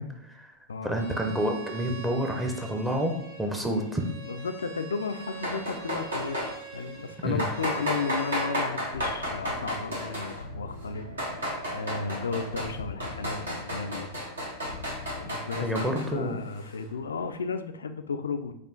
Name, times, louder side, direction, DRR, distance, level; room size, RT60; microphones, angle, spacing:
voice 1, 0.0-0.5 0.8-4.0 7.2-7.4 15.6-16.4, right 1 dB, 10° right, 3 dB, 0.6 m, -29 dB
Bowed string instrument, 0.9-8.6, right 5 dB, 50° right, 1.2 m, -43 dB
voice 2, 4.3-6.4 6.7-14.1 15.2-18.5, left 5 dB, 70° left, 9 dB, 0.3 m, -34 dB
sound 1, 5.3-6.5 7.4-10.4 10.9-12.7 13.0-16.1, equal, 70° right, 1.3 m, -32 dB
sound 2, 8.8-15.3, left 3 dB, 85° left, 0.7 m, -43 dB
5.0 x 2.4 x 3.6 m, 0.75 s
figure-of-eight pair, 90°, 0 cm